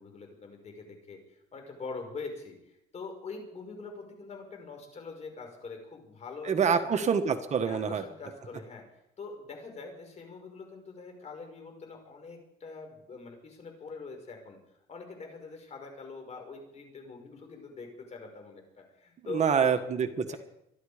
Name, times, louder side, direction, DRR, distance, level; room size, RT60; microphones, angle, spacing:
voice 1, 0.0-7.0 7.6-8.8 9.2-14.6 14.9-19.7 20.3-20.4, left 4 dB, 40° left, 4 dB, 5.5 m, -44 dB
voice 2, 6.4-8.0 19.3-20.4, right 6 dB, 45° right, 7 dB, 1.5 m, -26 dB
25.5 x 11.0 x 5.1 m, 0.81 s
cardioid pair, 110°, 17 cm